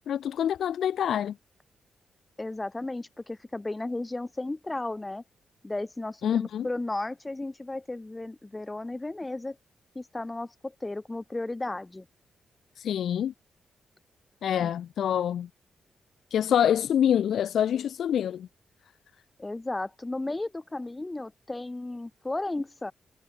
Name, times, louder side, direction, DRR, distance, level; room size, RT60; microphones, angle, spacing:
voice 1, 0.0-1.3 6.2-6.7 12.8-13.3 14.4-15.5 16.3-18.5, left 9 dB, 75° left, 1.0 m, -26 dB
voice 2, 2.4-5.2 5.6-9.6 9.9-12.1 14.6-14.7 19.4-22.9, left 2 dB, 20° left, 6.1 m, -34 dB
supercardioid pair, 50°, 0 cm